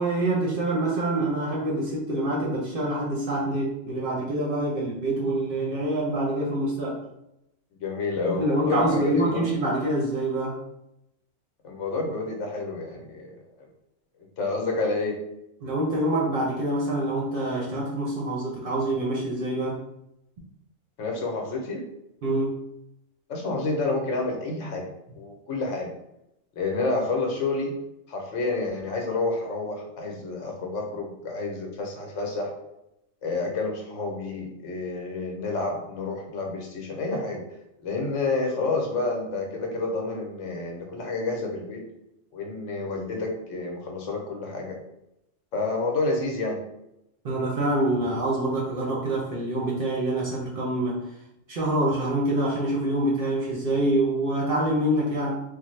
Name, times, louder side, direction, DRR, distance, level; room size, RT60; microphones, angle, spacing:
voice 1, 0.0-7.0 8.2-10.6 15.6-19.8 22.2-22.6 47.2-51.0 51.5-55.4, right 1 dB, 55° right, -4 dB, 0.7 m, -26 dB
voice 2, 7.8-9.5 11.6-13.4 14.4-15.2 21.0-21.9 23.3-24.9 25.2-25.9 26.6-27.8 28.1-32.5 33.2-37.4 37.8-41.8 42.3-44.8 45.5-46.6, left 3 dB, 70° left, 1 dB, 1.0 m, -29 dB
3.4 x 2.0 x 3.1 m, 0.85 s
omnidirectional pair, 1.4 m